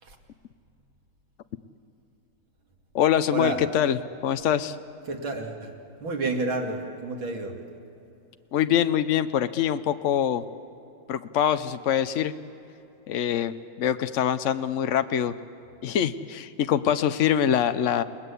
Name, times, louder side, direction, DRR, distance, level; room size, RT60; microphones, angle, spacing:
voice 1, 2.9-4.8 8.5-10.4 11.1-12.3 13.1-15.3 15.8-18.0, left 9 dB, 80° left, 10 dB, 0.6 m, -24 dB
voice 2, 5.0-5.7 6.0-7.6, right 3 dB, 80° right, 1 dB, 3.2 m, -30 dB
29.5 x 20.0 x 8.3 m, 2.9 s
omnidirectional pair, 2.2 m